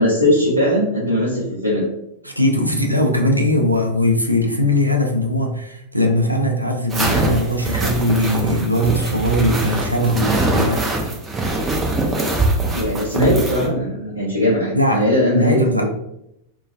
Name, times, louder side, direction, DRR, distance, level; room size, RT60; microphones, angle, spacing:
voice 1, 0.0-1.9 12.7-15.9, left 1 dB, 90° left, -9 dB, 0.6 m, -19 dB
voice 2, 2.2-10.9 14.7-15.9, left 1 dB, 90° right, 2 dB, 0.3 m, -20 dB
sound 1, 6.9-13.7, right 2 dB, 20° right, 0.5 m, -22 dB
2.4 x 2.2 x 2.4 m, 0.80 s
figure-of-eight pair, 90°, 0 cm